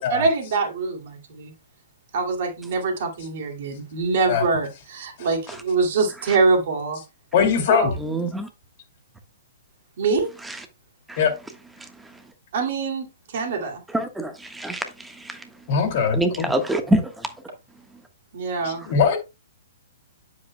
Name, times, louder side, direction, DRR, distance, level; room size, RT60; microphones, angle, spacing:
voice 1, 0.1-1.5 2.1-7.0 7.7-7.9 10.0-10.3 12.5-13.1 13.3-13.8 18.3-18.8, right 4 dB, 50° right, 2.5 m, -24 dB
voice 2, 7.3-7.9 11.2-11.3 15.7-16.5 18.6-19.2, left 6 dB, 45° left, 2.4 m, -21 dB
voice 3, 8.0-8.5 10.4-10.6 11.1-11.2 13.9-15.4 16.1-17.3, right 1 dB, 5° right, 1.3 m, -25 dB
8.9 x 7.6 x 2.2 m
figure-of-eight pair, 115°, 0 cm